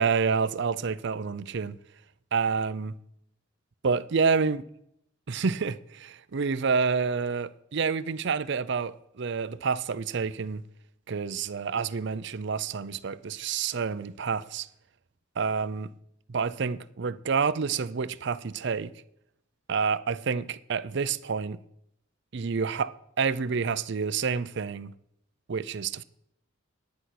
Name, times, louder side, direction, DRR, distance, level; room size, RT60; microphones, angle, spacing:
voice 1, 0.0-1.8 2.3-2.9 3.8-4.6 5.3-10.6 11.1-14.7 15.4-15.9 16.3-18.9 19.7-21.6 22.3-24.9 25.5-26.0, right 5 dB, 60° right, 0.5 m, -28 dB
10.0 x 9.6 x 5.9 m
head